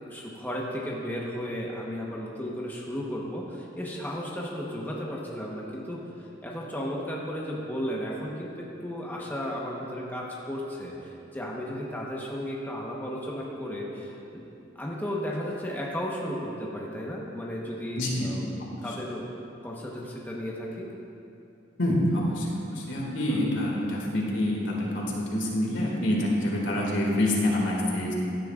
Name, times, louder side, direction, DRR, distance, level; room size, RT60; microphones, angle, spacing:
voice 1, 0.0-14.4 14.7-19.3 19.6-20.9 23.3-23.5, equal, 10° left, -4 dB, 1.1 m, -34 dB
voice 2, 18.0-18.3 18.6-18.7 21.8-28.1, left 1 dB, 80° left, -2 dB, 2.1 m, -26 dB
16.0 x 10.5 x 2.5 m, 2.7 s
head